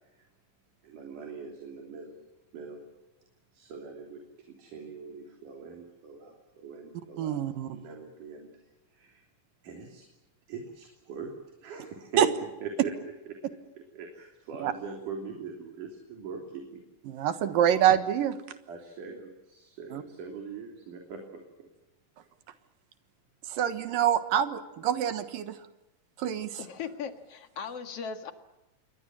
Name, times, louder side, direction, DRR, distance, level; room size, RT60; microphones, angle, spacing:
voice 1, 0.8-2.2 2.5-2.8 3.5-4.2 4.5-8.5 8.9-9.3 9.6-10.0 10.5-11.3 11.6-12.9 13.3-13.4 13.8-16.8 17.2-17.3 18.7-21.7, right 5 dB, 70° right, 2 dB, 4.7 m, -42 dB
voice 2, 7.2-7.8 12.2-12.3 14.6-14.7 17.1-18.4 19.9-20.0 23.5-25.6 26.2-26.6, right 10 dB, 90° right, 10 dB, 3.1 m, -26 dB
voice 3, 26.6-28.3, left 6 dB, 50° left, 7 dB, 2.6 m, -38 dB
28.0 x 23.0 x 7.6 m, 0.99 s
omnidirectional pair, 3.9 m